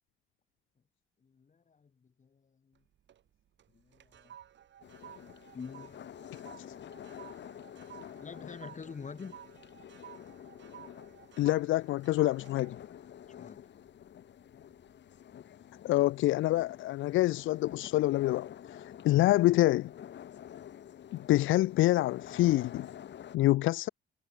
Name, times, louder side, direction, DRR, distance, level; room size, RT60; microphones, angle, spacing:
voice 1, 1.2-2.8 3.7-4.3 5.5-6.1 8.2-9.4 13.3-13.6, left 5 dB, 40° left, 4.3 m, -47 dB
sound 1, 2.8-3.3 3.6-14.2 14.6-14.9, right 10 dB, 65° right, 6.5 m, -54 dB
sound 2, 4.8-23.4, left 10 dB, 65° left, 2.8 m, -49 dB
voice 2, 11.4-12.8 15.8-18.5 18.7-19.9 21.3-22.9 23.3-23.9, left 16 dB, 85° left, 0.8 m, -26 dB
cardioid pair, 90°, 20 cm